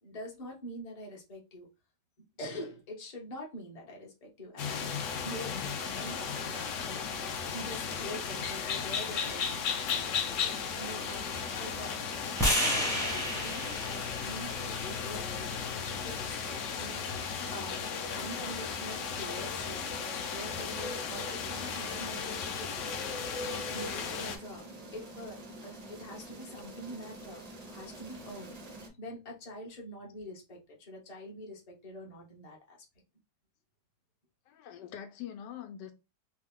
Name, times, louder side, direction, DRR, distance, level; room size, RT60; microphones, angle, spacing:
voice 1, 0.0-1.7 2.4-5.6 6.0-6.7 7.5-17.8 18.1-19.9 20.3-23.0 23.7-27.4 27.7-32.8, equal, 30° left, 0.9 m, -45 dB
sound 1, 4.6-24.4, left 6 dB, 65° left, 0.8 m, -35 dB
sound 2, 10.5-28.9, right 2 dB, 55° right, 0.4 m, -49 dB
sound 3, 12.4-16.6, equal, 5° left, 0.8 m, -33 dB
voice 2, 34.5-35.9, left 9 dB, 85° left, 1.2 m, -43 dB
3.2 x 2.2 x 3.6 m
omnidirectional pair, 1.8 m